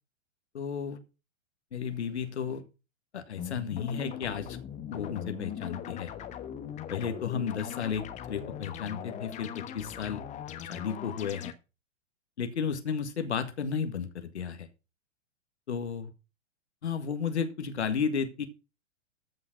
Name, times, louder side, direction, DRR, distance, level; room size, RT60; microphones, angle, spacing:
voice 1, 0.5-1.0 1.7-2.7 3.1-4.6 4.9-6.1 6.9-10.2 10.6-11.5 12.4-14.7 15.7-16.1 16.8-18.5, left 6 dB, 65° left, 9 dB, 1.7 m, -33 dB
sound 1, 3.4-11.5, left 9 dB, 20° left, 1.2 m, -40 dB
14.5 x 5.6 x 5.9 m, 0.31 s
figure-of-eight pair, 105°, 37 cm